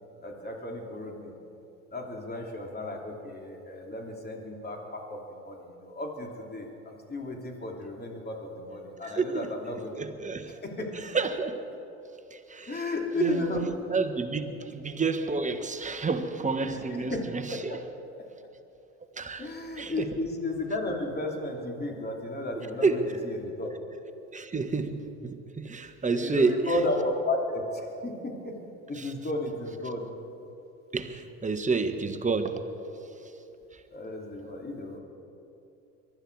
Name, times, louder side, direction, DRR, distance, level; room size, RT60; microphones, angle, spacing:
voice 1, 0.2-1.4 1.9-10.0 10.5-11.1 12.7-13.7 14.5-14.6 16.6-17.2 17.5-17.8 18.2-18.3 19.4-23.7 26.1-28.6 28.9-30.1 33.9-35.0, left 2 dB, 25° left, 1 dB, 3.1 m, -34 dB
voice 2, 9.0-9.5 10.0-10.5 11.1-11.6 12.3-12.8 13.2-13.4 13.9-17.8 19.2-19.5 19.8-20.0 22.8-23.0 24.3-26.6 29.0-29.1 30.9-32.6, right 4 dB, 20° right, 6 dB, 1.4 m, -29 dB
23.0 x 12.0 x 4.8 m, 2.9 s
hypercardioid pair, 70°, 38 cm